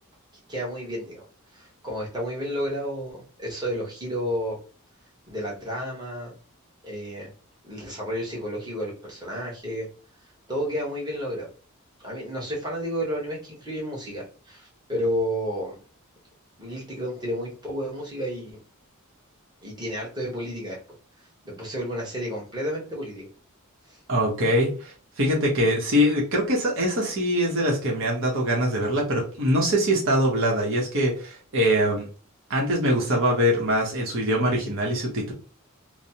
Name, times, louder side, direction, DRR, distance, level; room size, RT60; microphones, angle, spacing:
voice 1, 0.5-1.3 1.5-4.6 5.3-6.4 6.8-7.3 7.6-9.9 10.5-11.5 12.0-15.8 16.6-18.6 19.6-20.8 21.4-23.3 23.9-24.0, equal, 20° right, -3 dB, 1.1 m, -31 dB
voice 2, 24.1-32.1 32.5-35.3, equal, 60° right, -2 dB, 0.9 m, -23 dB
3.1 x 2.0 x 2.8 m, 0.38 s
head